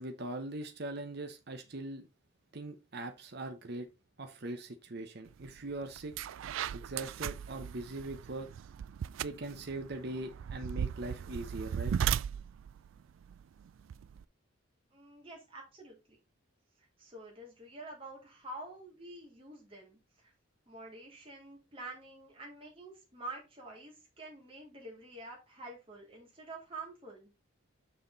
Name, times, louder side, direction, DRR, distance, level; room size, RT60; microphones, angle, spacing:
voice 1, 0.0-2.1 2.5-3.9 4.2-6.1 6.7-8.5 9.2-11.9, right 2 dB, 50° right, 0.9 m, -41 dB
sound 1, 5.4-5.6 6.0-14.2, right 8 dB, 75° right, 0.3 m, -37 dB
voice 2, 14.9-16.2 17.0-20.3 20.7-27.3, right 2 dB, 25° right, 3.5 m, -48 dB
6.5 x 5.8 x 4.0 m
head